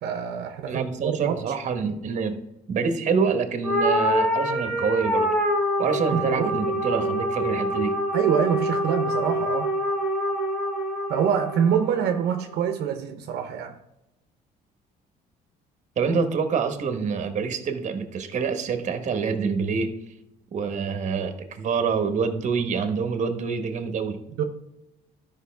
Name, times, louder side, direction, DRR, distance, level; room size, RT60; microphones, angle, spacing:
voice 1, 0.0-1.4 5.8-6.7 8.1-9.7 11.1-13.8 24.4-24.5, right 8 dB, 75° right, 0.8 m, -26 dB
voice 2, 0.7-2.4 2.7-5.4 5.8-8.0 16.0-19.9 20.5-24.2, right 5 dB, 45° right, 1.2 m, -26 dB
sound 1, 3.6-12.2, equal, 5° left, 2.5 m, -26 dB
12.5 x 5.4 x 3.4 m
cardioid pair, 110°, 17 cm